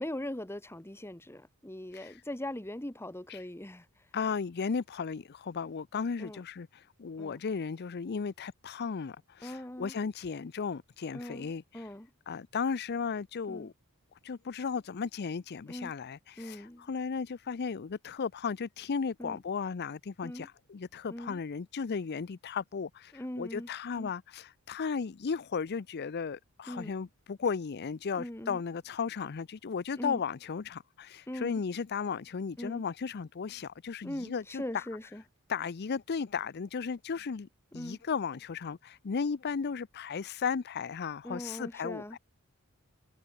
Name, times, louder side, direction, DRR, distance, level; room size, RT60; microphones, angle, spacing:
voice 1, 0.0-4.1 6.2-6.4 7.2-7.4 9.4-9.9 11.1-12.1 13.5-13.7 15.7-15.9 16.4-16.9 19.2-19.4 20.2-20.5 21.1-21.4 23.1-23.7 24.0-24.1 26.7-26.9 28.1-28.6 30.0-30.2 31.3-31.6 32.6-32.8 34.0-35.2 37.7-38.0 41.2-42.2, left 1 dB, 10° left, 1.3 m, -40 dB
voice 2, 4.1-11.9 12.3-13.7 14.2-34.9 35.5-37.5 37.7-42.2, left 5 dB, 50° left, 0.5 m, -35 dB
head